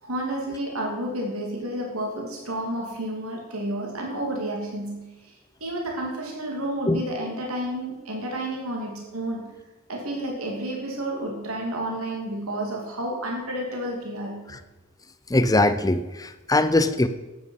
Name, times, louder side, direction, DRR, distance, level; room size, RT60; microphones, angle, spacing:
voice 1, 0.0-5.0 5.6-9.5 9.9-14.4, right 1 dB, 80° right, 0 dB, 2.8 m, -30 dB
voice 2, 15.3-17.1, left 2 dB, 15° left, 11 dB, 0.6 m, -21 dB
12.5 x 8.8 x 5.5 m, 1.1 s
head